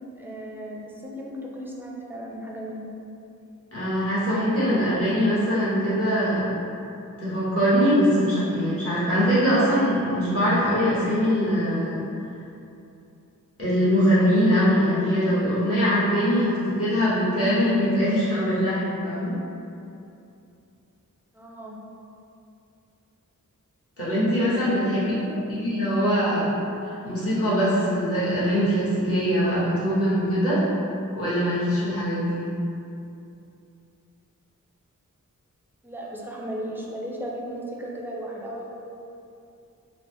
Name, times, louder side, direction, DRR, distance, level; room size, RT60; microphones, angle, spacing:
voice 1, 0.2-2.9 21.3-21.8 24.9-25.5 35.8-38.7, equal, 5° right, -4 dB, 0.5 m, -36 dB
voice 2, 3.7-6.5 7.2-12.1 13.6-19.3 24.0-25.1 25.5-26.5 26.8-30.7 31.2-32.5, equal, 45° left, -12 dB, 1.2 m, -22 dB
3.7 x 2.1 x 3.0 m, 2.7 s
wide cardioid pair, 55°, 33 cm